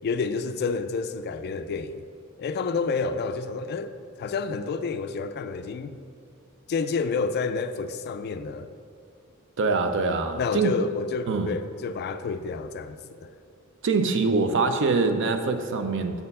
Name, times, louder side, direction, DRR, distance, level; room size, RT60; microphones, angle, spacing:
voice 1, 0.0-2.0 2.4-3.9 4.2-6.0 6.7-8.7 10.4-13.3, left 4 dB, 45° left, 0.3 m, -29 dB
voice 2, 9.6-10.7 11.3-11.6 13.8-16.2, right 4 dB, 55° right, 0.5 m, -24 dB
6.9 x 4.3 x 5.4 m
head